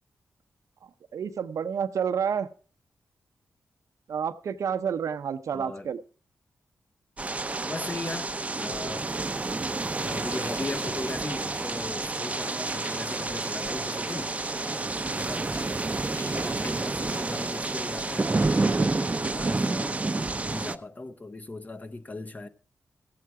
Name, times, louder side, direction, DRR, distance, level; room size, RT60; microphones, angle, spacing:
voice 1, 1.1-2.5 4.1-6.0, right 7 dB, 75° right, 0.7 m, -29 dB
voice 2, 5.5-5.9 7.6-9.1 10.0-14.3 15.1-15.5 16.2-18.3 18.7-22.5, left 2 dB, 30° left, 0.9 m, -38 dB
sound 1, 7.2-20.8, right 3 dB, 25° right, 0.6 m, -29 dB
sound 2, 10.1-19.1, left 2 dB, 50° left, 2.0 m, -46 dB
16.0 x 7.6 x 4.7 m
cardioid pair, 80°, 5 cm